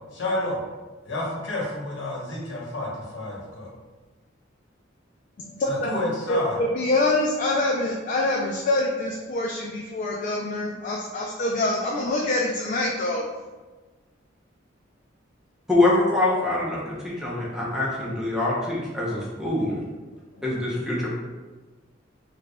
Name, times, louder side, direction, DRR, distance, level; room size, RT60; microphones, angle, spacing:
voice 1, 0.1-0.6 1.0-3.7 5.7-6.6, left 2 dB, 75° left, -4 dB, 1.0 m, -29 dB
voice 2, 5.4-5.9 6.3-13.2, left 2 dB, 40° left, -2 dB, 0.3 m, -25 dB
voice 3, 15.7-19.8 20.4-21.1, left 2 dB, 5° right, -6 dB, 0.6 m, -24 dB
5.0 x 2.4 x 2.2 m, 1.3 s
head